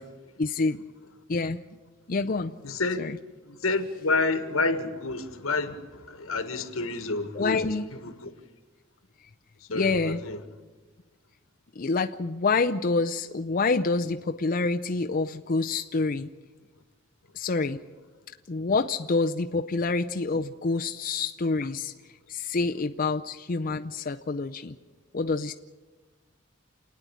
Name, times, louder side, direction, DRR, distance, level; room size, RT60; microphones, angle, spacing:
voice 1, 0.4-0.9 1.3-1.6 2.1-2.6 3.0-3.2 7.3-7.9 9.7-10.2 11.8-16.3 17.3-17.8 18.5-21.9 22.3-24.8 25.1-25.5, left 3 dB, 45° left, 0.5 m, -27 dB
voice 2, 2.6-3.0 3.5-7.6 7.9-8.3 9.7-10.4, left 3 dB, 90° left, 1.6 m, -29 dB
28.5 x 9.6 x 9.9 m
head